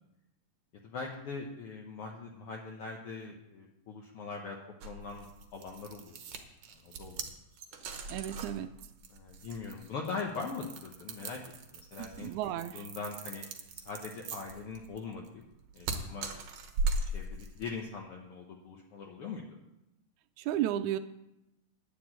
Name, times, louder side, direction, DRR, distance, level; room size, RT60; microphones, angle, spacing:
voice 1, 0.8-4.6 4.8-5.3 5.5-6.4 6.8-7.2 7.7-7.9 9.1-11.4 11.7-13.4 13.7-15.4 15.7-16.3 17.1-19.6, left 4 dB, 60° left, 0 dB, 1.7 m, -41 dB
sound 1, 4.8-17.7, right 3 dB, 60° right, 1.9 m, -39 dB
voice 2, 8.1-8.7 12.0-12.9 20.4-21.0, right 12 dB, 85° right, 9 dB, 2.0 m, -33 dB
10.0 x 7.0 x 8.8 m, 0.89 s
omnidirectional pair, 3.3 m